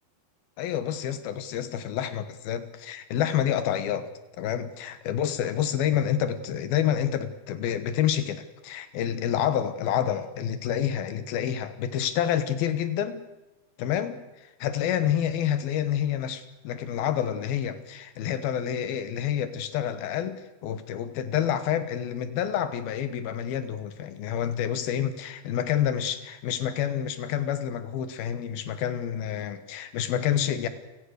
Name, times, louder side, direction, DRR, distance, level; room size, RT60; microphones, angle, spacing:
voice 1, 0.6-4.1 4.4-13.2 13.8-14.2 14.6-30.7, left 10 dB, 70° left, 11 dB, 3.0 m, -28 dB
29.0 x 17.5 x 6.6 m, 1.0 s
omnidirectional pair, 4.7 m